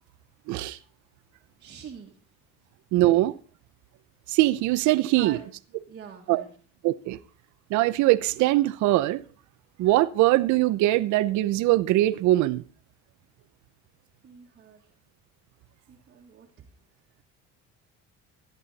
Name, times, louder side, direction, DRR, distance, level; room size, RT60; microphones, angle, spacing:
voice 1, 0.5-0.8 2.9-3.3 4.3-5.4 6.3-6.4 6.8-7.2 7.7-9.2 9.8-12.6, right 16 dB, 70° right, 0.9 m, -22 dB
voice 2, 1.6-2.2 5.1-5.5 5.9-6.6 14.2-14.9 15.9-16.7, right 7 dB, 35° right, 1.8 m, -44 dB
14.5 x 11.0 x 4.2 m
cardioid pair, 140°, 30 cm